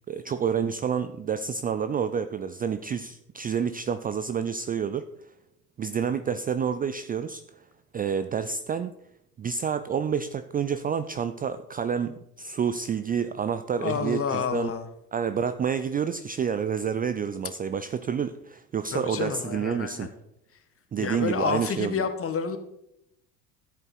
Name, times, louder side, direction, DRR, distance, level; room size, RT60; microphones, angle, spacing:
voice 1, 0.1-5.0 5.8-7.4 7.9-8.9 9.4-14.7 15.1-20.1 20.9-21.9, right 7 dB, 20° right, 11 dB, 0.5 m, -29 dB
voice 2, 13.8-14.9 18.9-20.1 21.0-22.6, left 6 dB, 30° left, 8 dB, 1.9 m, -29 dB
14.5 x 8.3 x 4.6 m, 0.81 s
figure-of-eight pair, 70°, 48 cm